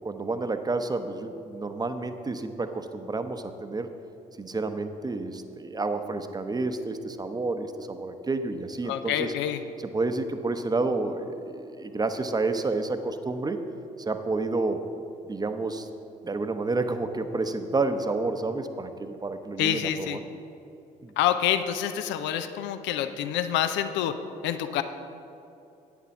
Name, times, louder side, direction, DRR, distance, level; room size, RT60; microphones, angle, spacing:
voice 1, 0.0-3.9 4.4-9.3 9.8-13.6 14.1-14.8 15.3-15.9 16.2-20.2 21.0-21.1, right 3 dB, 20° right, 8 dB, 0.8 m, -30 dB
voice 2, 8.9-9.6 19.6-20.2 21.2-24.2 24.4-24.8, left 10 dB, 65° left, 10 dB, 0.6 m, -27 dB
9.2 x 7.1 x 6.0 m, 2.7 s
hypercardioid pair, 50°, 20 cm